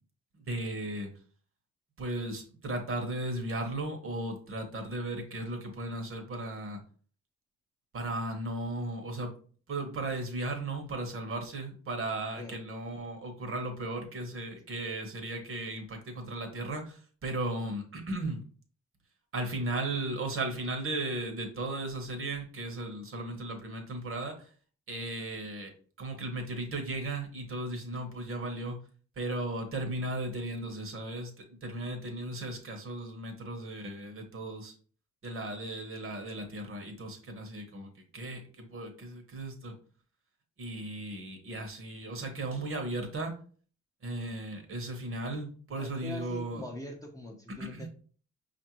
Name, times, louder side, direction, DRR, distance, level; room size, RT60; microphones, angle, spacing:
voice 1, 0.5-1.1 2.0-6.8 7.9-9.3 9.7-18.4 19.3-24.5 24.9-25.7 26.0-28.8 29.2-34.7 35.2-39.8 40.6-43.4 44.0-46.6 47.6-47.9, right 2 dB, 45° right, 5 dB, 1.0 m, -36 dB
voice 2, 45.8-47.9, left 1 dB, 10° left, 1 dB, 0.7 m, -42 dB
5.0 x 2.5 x 3.0 m, 0.43 s
cardioid pair, 90°, 30 cm